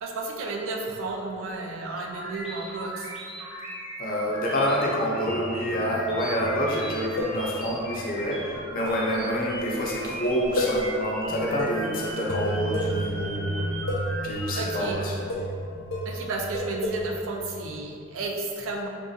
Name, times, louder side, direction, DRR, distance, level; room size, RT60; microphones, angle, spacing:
voice 1, 0.0-3.1 14.6-15.0 16.0-18.9, right 3 dB, 70° right, 0 dB, 0.4 m, -32 dB
sound 1, 2.0-14.9, equal, ahead, 0.9 m, -38 dB
voice 2, 4.0-13.7 14.2-15.3, equal, 45° left, -3 dB, 0.5 m, -28 dB
sound 2, 4.2-9.7 9.9-10.1 11.3-17.8, right 1 dB, 85° right, 1.3 m, -37 dB
sound 3, 6.9-7.8 8.9-10.9 11.2-11.3 11.6-13.1 13.9-14.2 15.1-15.6 15.9-17.2, left 1 dB, 85° left, 0.8 m, -31 dB
3.6 x 2.6 x 2.4 m, 2.4 s
head